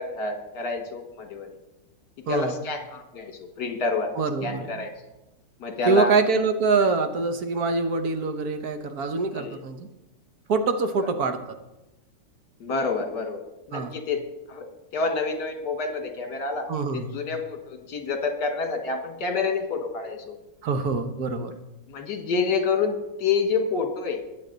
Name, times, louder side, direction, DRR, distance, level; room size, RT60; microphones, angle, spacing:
voice 1, 0.0-1.5 2.3-4.1 4.4-4.9 5.6-6.1 9.3-9.6 12.6-14.2 14.5-16.7 16.9-20.3 21.9-24.2, left 4 dB, 65° left, 5 dB, 2.1 m, -28 dB
voice 2, 4.2-4.7 5.9-9.9 10.5-11.4 13.7-13.9 16.7-17.1 20.6-21.5, right 4 dB, 60° right, 7 dB, 1.3 m, -24 dB
20.5 x 7.7 x 4.0 m, 0.97 s
omnidirectional pair, 2.0 m